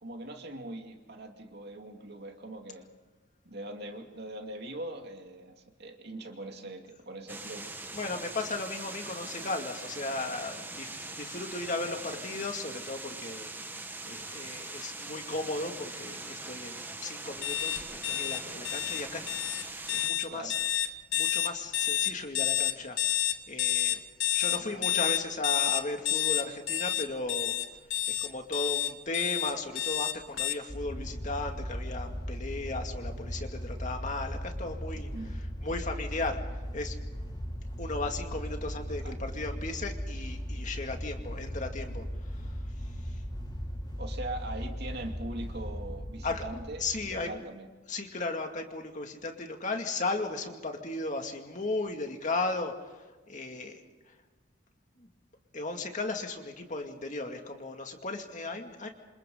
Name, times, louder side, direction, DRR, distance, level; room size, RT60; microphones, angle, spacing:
voice 1, 0.0-2.9 3.4-7.6 12.3-12.5 20.3-20.6 24.5-24.9 34.9-35.3 39.0-39.1 44.0-47.7, right 1 dB, 55° right, 3 dB, 2.6 m, -41 dB
sound 1, 7.3-20.1, right 2 dB, 10° right, 1.2 m, -42 dB
voice 2, 7.9-13.5 14.0-20.6 21.1-24.0 24.3-27.5 28.1-37.0 37.8-42.6 43.0-43.2 46.2-46.4 46.8-47.3 47.9-52.9 53.3-53.8 54.1-54.2 55.0-55.1 55.5-58.9, left 3 dB, 40° left, 4 dB, 2.3 m, -36 dB
sound 2, 17.4-30.5, left 12 dB, 75° left, 1.6 m, -29 dB
sound 3, 30.7-47.2, equal, 20° left, 6.6 m, -38 dB
27.5 x 27.5 x 3.9 m, 1.2 s
head